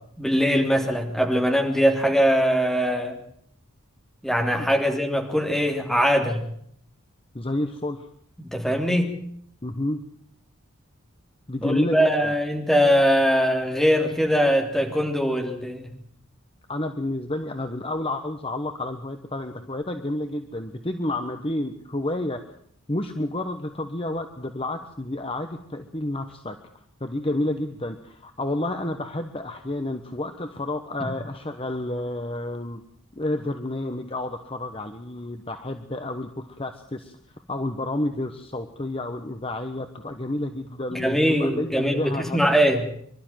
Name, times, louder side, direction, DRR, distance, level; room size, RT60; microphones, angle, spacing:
voice 1, 0.2-3.1 4.2-6.4 8.5-9.2 11.6-15.9 40.9-42.8, equal, ahead, 2 dB, 3.3 m, -21 dB
voice 2, 4.5-4.8 7.3-8.1 9.6-10.0 11.5-12.3 16.7-22.4 22.9-26.6 27.0-32.8 33.1-37.2 37.5-42.5, left 1 dB, 25° left, 6 dB, 1.2 m, -30 dB
25.5 x 12.5 x 9.3 m, 0.67 s
head